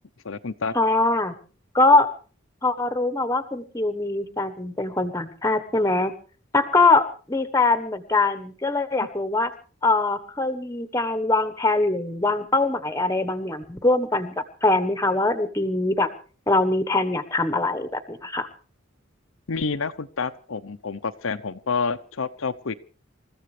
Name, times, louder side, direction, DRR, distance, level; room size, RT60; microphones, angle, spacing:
voice 1, 0.2-0.7 19.5-22.7, left 4 dB, 70° left, 9 dB, 0.8 m, -28 dB
voice 2, 0.7-1.3 1.7-2.1 2.6-6.1 6.5-9.5 9.8-16.1 16.5-18.5, left 2 dB, 15° left, 12 dB, 1.2 m, -22 dB
28.0 x 14.5 x 3.3 m, 0.39 s
head